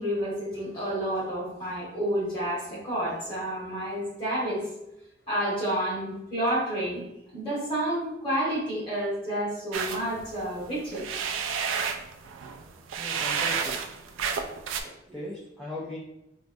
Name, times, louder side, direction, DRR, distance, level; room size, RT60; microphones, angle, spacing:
voice 1, 0.0-4.7 5.3-7.0 7.3-11.0 14.8-15.1, right 1 dB, 25° left, -7 dB, 1.5 m, -30 dB
sound 1, 9.7-14.8, right 6 dB, 90° right, 0.3 m, -31 dB
voice 2, 13.0-13.8 15.1-16.0, left 1 dB, 5° left, -7 dB, 0.4 m, -38 dB
4.5 x 2.1 x 2.6 m, 0.88 s
head